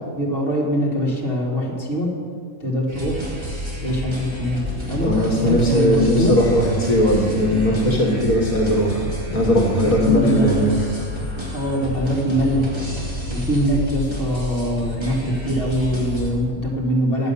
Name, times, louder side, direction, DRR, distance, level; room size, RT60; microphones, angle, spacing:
voice 1, 0.1-2.1 2.6-3.2 3.8-4.6 4.9-6.4 9.8-10.7 11.5-12.7 13.3-17.3, equal, 40° left, -4 dB, 2.4 m, -23 dB
sound 1, 2.9-16.3, left 1 dB, 20° right, 2.1 m, -30 dB
voice 2, 5.0-10.7, equal, 70° left, -1 dB, 1.9 m, -18 dB
11.0 x 8.0 x 6.9 m, 2.1 s
omnidirectional pair, 1.5 m